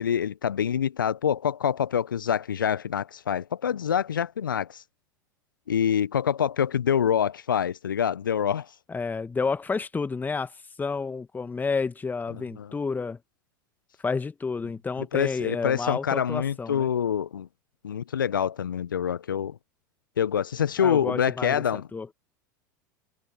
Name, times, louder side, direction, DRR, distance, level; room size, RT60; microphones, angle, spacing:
voice 1, 0.0-4.8 5.7-8.7 12.3-12.7 15.1-17.5 17.8-19.6 20.2-21.9, left 8 dB, 80° left, 0.9 m, -26 dB
voice 2, 8.9-10.5 10.8-13.2 14.0-16.9 20.8-22.1, left 4 dB, 15° left, 1.8 m, -30 dB
figure-of-eight pair, 80°, 11 cm